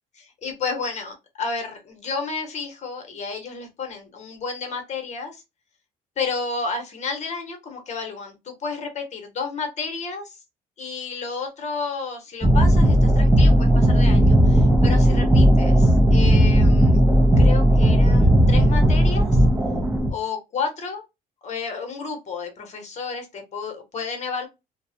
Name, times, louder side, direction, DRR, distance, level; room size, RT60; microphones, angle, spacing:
voice 1, 0.4-5.4 6.2-10.4 10.8-17.0 17.4-19.4 20.1-21.0 21.4-24.5, left 4 dB, 40° left, 4 dB, 0.9 m, -31 dB
sound 1, 12.4-20.1, equal, 10° right, 0.5 m, -16 dB
2.3 x 2.0 x 2.7 m, 0.23 s
cardioid pair, 110°, 17 cm